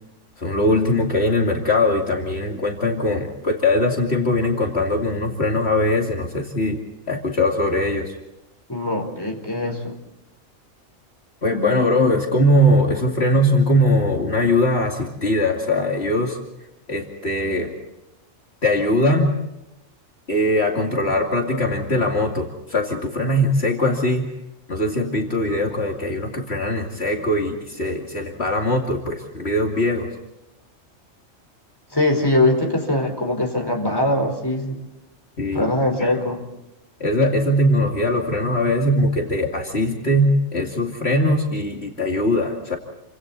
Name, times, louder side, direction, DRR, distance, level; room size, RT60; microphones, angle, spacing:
voice 1, 0.4-6.8 7.1-8.1 11.4-16.4 16.9-17.7 18.6-19.3 20.3-24.3 24.7-30.1 35.4-35.7 36.0-36.1 37.0-42.8, left 1 dB, 55° left, 1 dB, 2.8 m, -21 dB
voice 2, 8.7-9.9 31.9-34.8 35.5-36.4, left 1 dB, 15° left, 3 dB, 4.3 m, -22 dB
29.5 x 25.5 x 4.1 m, 0.93 s
omnidirectional pair, 1.3 m